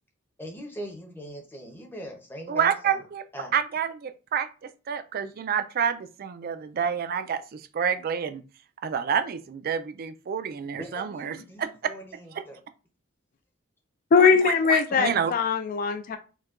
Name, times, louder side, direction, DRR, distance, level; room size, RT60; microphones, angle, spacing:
voice 1, 0.4-3.0 3.3-3.5 10.7-12.6, equal, 10° left, 0.7 m, -41 dB
voice 2, 2.5-3.2 3.5-4.5 4.9-8.4 8.8-11.7 12.3-12.4 14.2-15.3, right 7 dB, 45° right, 0.3 m, -28 dB
voice 3, 14.1-16.2, left 5 dB, 45° left, 0.3 m, -21 dB
4.5 x 2.2 x 2.4 m
head